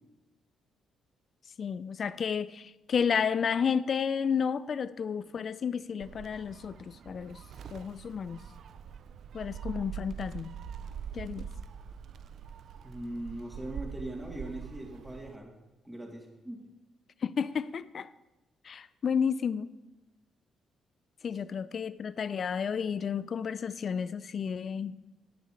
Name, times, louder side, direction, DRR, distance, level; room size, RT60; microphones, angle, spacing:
voice 1, 1.6-7.4 7.7-8.4 9.3-10.5 11.1-11.5 17.2-18.1 18.6-19.7 21.2-24.9, left 7 dB, 55° left, 16 dB, 0.4 m, -31 dB
Gull seagull, 6.0-15.4, right 7 dB, 65° right, 0.4 m, -43 dB
voice 2, 12.8-15.5 15.8-16.6 21.3-21.4, right 1 dB, 5° right, -1 dB, 3.0 m, -40 dB
19.0 x 6.6 x 3.2 m, 1.0 s
supercardioid pair, 70°, 0 cm